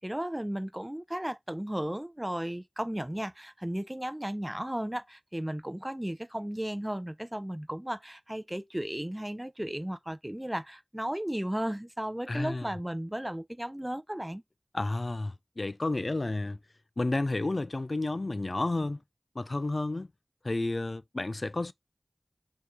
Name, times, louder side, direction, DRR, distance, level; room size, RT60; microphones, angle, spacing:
voice 1, 0.0-14.4, right 1 dB, 15° right, 0.6 m, -35 dB
voice 2, 12.3-12.7 14.7-16.6 17.0-19.0 19.4-20.1 20.4-21.7, left 2 dB, 65° left, 0.4 m, -31 dB
6.3 x 3.5 x 4.2 m
wide cardioid pair, 45°, 0 cm